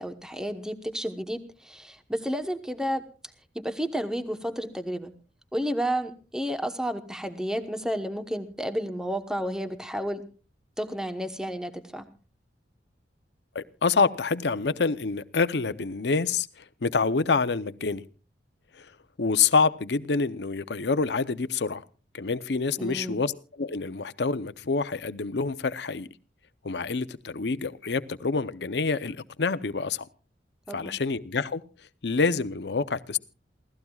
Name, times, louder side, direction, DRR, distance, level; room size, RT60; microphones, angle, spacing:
voice 1, 0.0-3.0 3.5-5.1 5.5-10.2 10.8-12.1 22.8-23.2 30.7-31.0, equal, 5° right, 1.0 m, -31 dB
voice 2, 13.5-18.0 18.8-18.9 19.2-21.8 22.1-26.1 26.6-30.1 30.7-31.6 32.0-33.2, left 4 dB, 70° left, 0.7 m, -27 dB
28.5 x 16.5 x 2.4 m
head